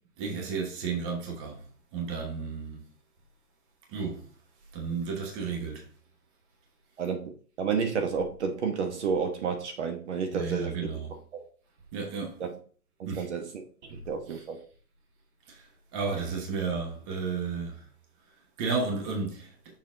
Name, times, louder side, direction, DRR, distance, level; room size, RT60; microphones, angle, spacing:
voice 1, 0.2-1.6 1.9-2.8 3.9-4.2 4.7-5.8 10.3-11.1 11.9-12.4 13.1-13.3 13.9-14.0 15.5-15.6 15.9-17.8 18.6-19.5, right 4 dB, 20° right, 1.1 m, -32 dB
voice 2, 7.0-7.3 7.6-10.8 11.3-11.4 12.4-12.6 13.0-13.6 14.1-14.6, right 6 dB, 50° right, 1.2 m, -30 dB
6.5 x 4.0 x 3.9 m
hypercardioid pair, 155°, 45 cm